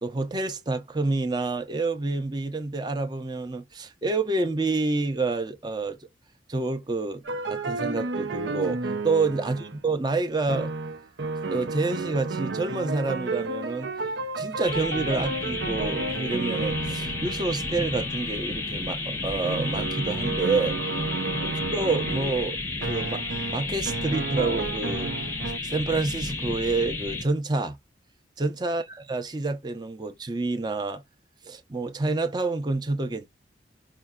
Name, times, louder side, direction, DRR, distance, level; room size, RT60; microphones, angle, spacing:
voice 1, 0.0-6.0 6.5-10.7 11.5-13.9 14.4-20.8 21.4-22.6 22.9-23.2 23.5-25.1 25.6-27.8 28.4-28.8 29.1-31.0 31.4-33.3, right 3 dB, 25° right, 0.6 m, -28 dB
sound 1, 7.2-9.8 10.5-25.6, right 3 dB, 80° right, 0.6 m, -32 dB
sound 2, 14.6-27.2, left 3 dB, 15° left, 0.6 m, -32 dB
4.7 x 2.7 x 2.2 m
head